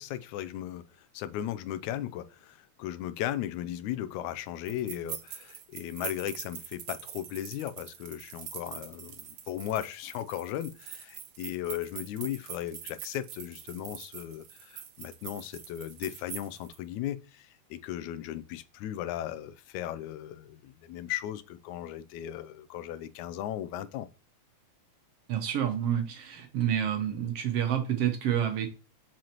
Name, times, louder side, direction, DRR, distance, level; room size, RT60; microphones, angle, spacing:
voice 1, 0.0-24.1, left 12 dB, 85° left, 2.0 m, -37 dB
sound 1, 4.7-16.8, right 9 dB, 85° right, 1.1 m, -44 dB
voice 2, 25.3-28.7, right 10 dB, 65° right, 1.8 m, -28 dB
7.6 x 5.8 x 3.0 m
omnidirectional pair, 3.3 m